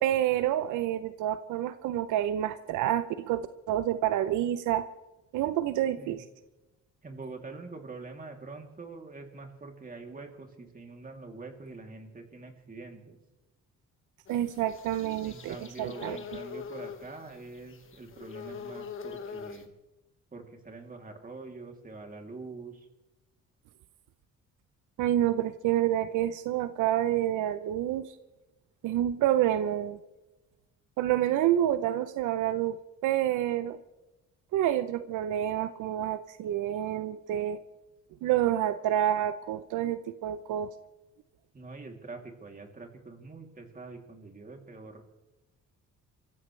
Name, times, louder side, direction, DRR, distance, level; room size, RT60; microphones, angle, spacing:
voice 1, 0.0-4.9 5.3-6.2 14.3-16.2 25.0-28.1 28.8-30.0 31.0-33.8 34.5-37.6 38.2-40.7, right 12 dB, 85° right, 13 dB, 0.7 m, -28 dB
voice 2, 7.0-13.2 15.2-19.7 20.3-22.9 41.5-45.0, right 3 dB, 30° right, 3 dB, 2.9 m, -45 dB
sound 1, 14.3-19.6, left 6 dB, 45° left, 1.6 m, -43 dB
29.0 x 15.0 x 3.2 m, 1.0 s
cardioid pair, 90°, 30 cm